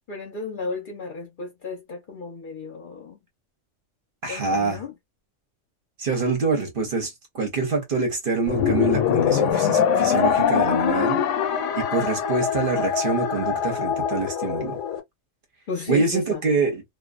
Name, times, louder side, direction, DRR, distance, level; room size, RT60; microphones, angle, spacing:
voice 1, 0.1-3.2 4.3-4.9 15.7-16.4, left 3 dB, 50° left, 0.7 m, -33 dB
voice 2, 4.2-4.8 6.0-11.2 11.7-14.8 15.9-16.8, right 4 dB, 50° right, 0.8 m, -25 dB
sound 1, 8.5-15.0, left 8 dB, 75° left, 0.9 m, -23 dB
2.4 x 2.2 x 2.4 m
omnidirectional pair, 1.3 m